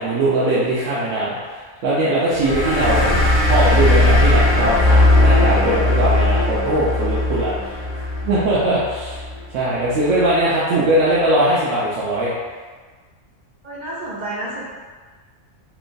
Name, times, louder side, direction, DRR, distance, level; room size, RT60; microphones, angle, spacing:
voice 1, 0.0-9.2 9.5-12.3, right 1 dB, 85° right, -8 dB, 1.0 m, -20 dB
sound 1, 2.3-9.4, left 2 dB, 70° left, 1.0 m, -17 dB
voice 2, 13.6-14.6, right 1 dB, 60° right, -7 dB, 0.4 m, -29 dB
3.0 x 2.2 x 2.5 m, 1.4 s
omnidirectional pair, 1.3 m